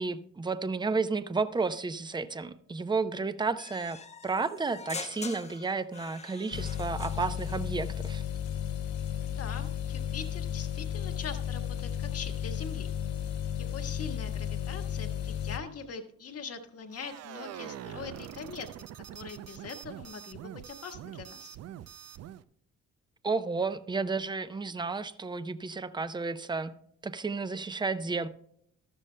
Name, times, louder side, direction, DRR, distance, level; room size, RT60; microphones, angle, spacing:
voice 1, 0.0-4.0 4.2-8.2 23.2-26.7 27.0-28.3, right 4 dB, 15° right, 0.6 m, -32 dB
sound 1, 3.6-7.6, left 4 dB, 20° left, 0.7 m, -44 dB
sound 2, 6.5-15.6, left 9 dB, 70° left, 0.9 m, -34 dB
voice 2, 9.2-12.9 13.5-18.7 19.1-21.6, left 5 dB, 50° left, 1.5 m, -42 dB
sound 3, 16.9-22.4, right 11 dB, 55° right, 0.5 m, -44 dB
14.0 x 12.5 x 2.2 m
cardioid pair, 90°, 30 cm